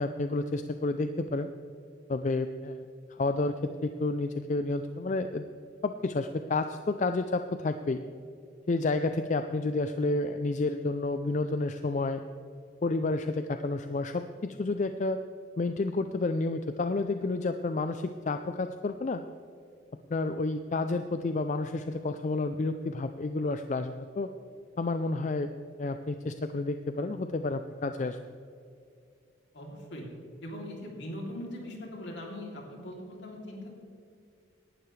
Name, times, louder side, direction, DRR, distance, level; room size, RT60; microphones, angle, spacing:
voice 1, 0.0-1.5 2.1-2.8 3.1-5.5 5.8-8.0 8.7-12.2 12.8-15.2 15.6-19.2 20.1-24.3 24.8-25.5 25.8-28.2, left 3 dB, 40° left, 8 dB, 0.4 m, -30 dB
voice 2, 29.5-30.0 30.4-33.7, left 1 dB, 65° left, -1 dB, 3.1 m, -40 dB
18.0 x 11.5 x 3.3 m, 2.4 s
head